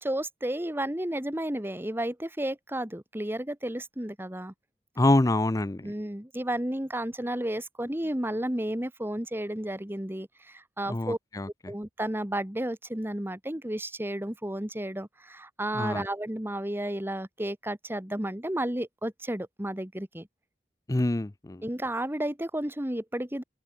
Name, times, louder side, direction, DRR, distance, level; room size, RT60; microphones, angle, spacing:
voice 1, 0.0-4.5 5.8-11.2 11.7-20.3 21.6-23.4, right 1 dB, 10° right, 1.7 m, -32 dB
voice 2, 5.0-5.9 10.9-11.5 15.7-16.1 20.9-21.6, left 2 dB, 20° left, 0.5 m, -26 dB
open air
head